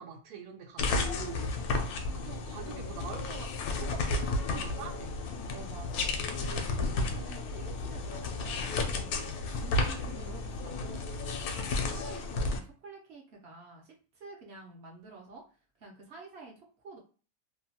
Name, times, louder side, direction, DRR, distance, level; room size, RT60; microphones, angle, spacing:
voice 1, 0.0-1.5 1.8-5.2, right 7 dB, 90° right, 4 dB, 1.2 m, -44 dB
sound 1, 0.8-12.6, left 3 dB, 80° left, 1.0 m, -32 dB
voice 2, 1.6-2.2 5.5-6.1 6.3-9.2 9.5-15.4 15.8-17.0, right 3 dB, 55° right, -1 dB, 0.8 m, -49 dB
2.9 x 2.2 x 2.8 m, 0.37 s
omnidirectional pair, 1.6 m